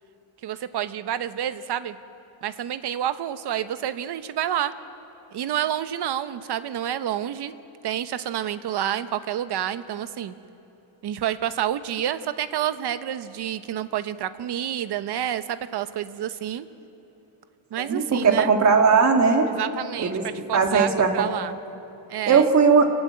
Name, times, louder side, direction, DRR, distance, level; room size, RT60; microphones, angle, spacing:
voice 1, 0.4-2.0 2.4-4.7 5.3-7.5 7.8-10.3 11.0-16.7 17.7-18.5 19.5-21.5 22.1-22.5, right 10 dB, 60° right, 12 dB, 1.0 m, -29 dB
voice 2, 17.9-19.5 20.0-20.2 20.5-21.3 22.3-22.9, right 5 dB, 35° right, 3 dB, 2.1 m, -18 dB
26.5 x 15.5 x 9.4 m, 2.9 s
cardioid pair, 155°, 46 cm